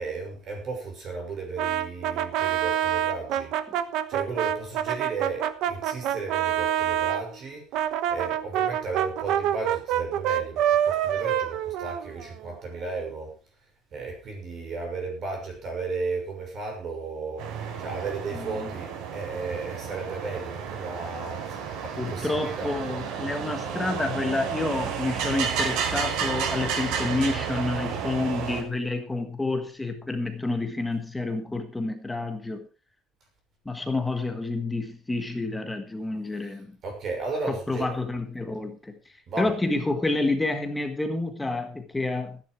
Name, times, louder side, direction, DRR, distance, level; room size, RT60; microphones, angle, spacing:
voice 1, 0.0-3.5 4.1-13.3 13.9-22.7 36.8-37.9 39.3-39.5, right 3 dB, 35° right, 2 dB, 6.2 m, -34 dB
Brass instrument, 1.6-7.2 7.7-12.5, right 10 dB, 55° right, 1.2 m, -26 dB
sound 1, 17.4-28.6, right 7 dB, 90° right, 5.2 m, -31 dB
voice 2, 18.3-18.7 22.0-32.7 33.6-36.8 37.5-42.4, left 2 dB, 5° left, 6 dB, 1.5 m, -29 dB
14.5 x 10.5 x 4.7 m, 0.33 s
cardioid pair, 175°, 0 cm